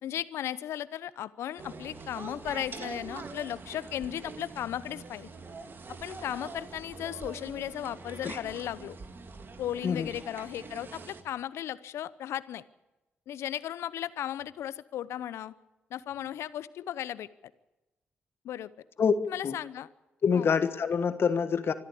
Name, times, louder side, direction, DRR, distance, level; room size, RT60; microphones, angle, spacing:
voice 1, 0.0-5.3 6.0-9.0 9.6-12.6 13.3-15.5 15.9-17.3 18.4-18.7 19.3-19.9 20.3-20.5, left 11 dB, 75° left, 17 dB, 0.8 m, -36 dB
sound 1, 1.6-11.2, right 4 dB, 50° right, 2.5 m, -44 dB
voice 2, 20.2-21.7, left 6 dB, 60° left, 11 dB, 1.5 m, -26 dB
24.5 x 13.0 x 8.5 m, 1.0 s
hypercardioid pair, 45°, 5 cm